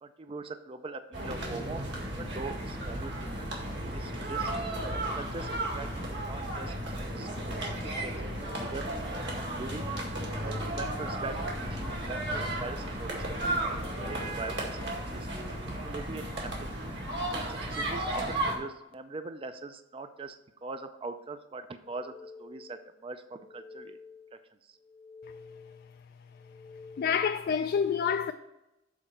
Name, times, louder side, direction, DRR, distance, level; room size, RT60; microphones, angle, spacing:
voice 1, 0.0-4.5 4.9-5.9 6.3-8.9 9.3-9.9 10.3-13.7 14.0-15.3 15.7-16.9 17.4-20.4 20.6-24.0 24.3-24.4 24.7-24.8, right 3 dB, 30° right, 0.4 m, -42 dB
sound 1, 1.1-18.6, right 1 dB, 65° right, 2.0 m, -34 dB
sound 2, 21.8-22.9 23.3-24.4 24.8-25.9 26.3-27.5, left 4 dB, 15° left, 0.7 m, -50 dB
voice 2, 27.0-28.3, left 7 dB, 55° left, 0.3 m, -27 dB
7.1 x 4.3 x 5.6 m
head